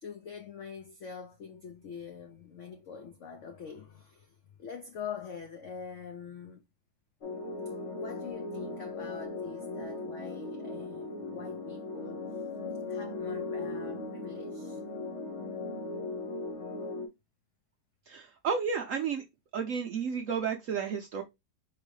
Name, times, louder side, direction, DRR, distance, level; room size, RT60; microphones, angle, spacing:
voice 1, 0.0-6.6 8.0-12.2 12.9-14.8, left 6 dB, 90° left, 0.6 m, -44 dB
sound 1, 7.2-17.1, left 3 dB, 45° left, 1.2 m, -38 dB
voice 2, 18.1-19.2 19.5-21.2, right 6 dB, 75° right, 0.7 m, -32 dB
4.6 x 2.9 x 3.1 m
omnidirectional pair, 2.0 m